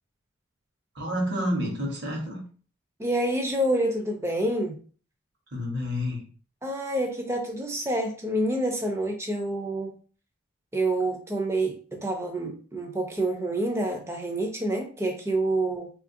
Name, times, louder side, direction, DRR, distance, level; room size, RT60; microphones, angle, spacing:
voice 1, 0.9-2.4 5.5-6.2, equal, 55° right, -1 dB, 1.0 m, -29 dB
voice 2, 3.0-4.8 6.6-9.9 10.7-15.9, right 1 dB, 15° right, 3 dB, 0.5 m, -27 dB
3.3 x 2.4 x 2.6 m, 0.40 s
head